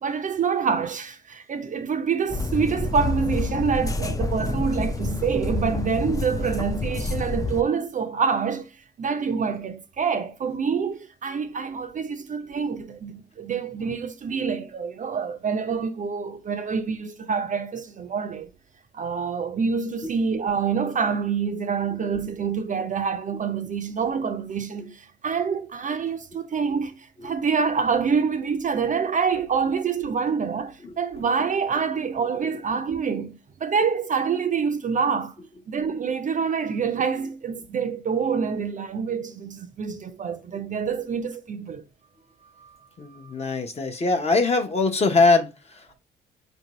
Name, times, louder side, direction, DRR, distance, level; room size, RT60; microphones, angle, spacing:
voice 1, 0.0-18.5 18.9-35.3 35.7-41.8 42.6-42.8 43.1-43.3, right 6 dB, 40° right, 0.5 m, -26 dB
sound 1, 2.3-7.6, left 2 dB, 15° left, 0.4 m, -28 dB
voice 2, 30.8-31.2 32.5-32.6 43.0-46.0, left 3 dB, 30° left, 0.8 m, -23 dB
4.4 x 2.6 x 3.0 m
cardioid pair, 90°, 20 cm